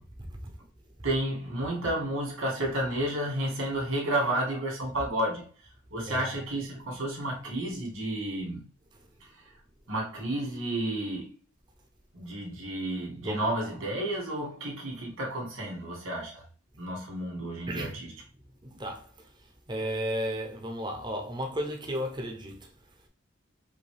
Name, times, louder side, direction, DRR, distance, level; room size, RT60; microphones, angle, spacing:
voice 1, 1.0-5.5 5.9-8.6 9.2-9.5 9.9-11.3 12.1-16.5 16.8-18.1, right 1 dB, 80° right, 2.2 m, -31 dB
voice 2, 17.7-18.0 18.8-19.0 19.7-22.7, equal, 20° right, 0.6 m, -33 dB
5.1 x 2.7 x 3.3 m
head